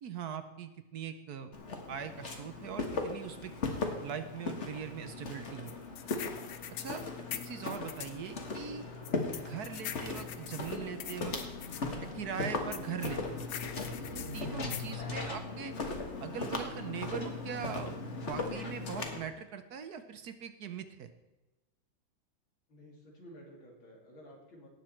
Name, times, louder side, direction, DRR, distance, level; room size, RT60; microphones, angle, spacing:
voice 1, 0.0-1.5 1.9-3.5 4.0-5.7 6.8-7.0 7.3-8.9 9.4-11.4 12.0-13.5 14.1-15.8 16.2-21.1, right 8 dB, 65° right, 10 dB, 1.1 m, -41 dB
Walk footsteps, 1.5-19.2, left 3 dB, 40° left, 1.7 m, -38 dB
sound 1, 5.7-8.2 9.0-11.8 12.7-14.9, left 11 dB, 70° left, 1.4 m, -43 dB
voice 2, 22.7-24.7, equal, 90° left, -1 dB, 3.8 m, -53 dB
18.0 x 7.1 x 4.4 m, 1.1 s
omnidirectional pair, 2.1 m